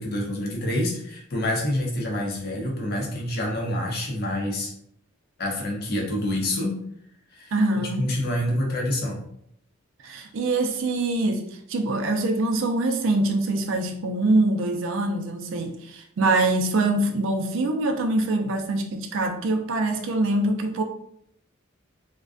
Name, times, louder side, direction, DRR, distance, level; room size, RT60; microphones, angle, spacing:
voice 1, 0.0-4.7 5.4-6.8 7.3-9.2, left 1 dB, 45° left, -1 dB, 0.6 m, -27 dB
voice 2, 7.5-8.1 10.0-20.8, right 2 dB, 70° right, 4 dB, 0.4 m, -24 dB
2.4 x 2.2 x 2.4 m, 0.71 s
head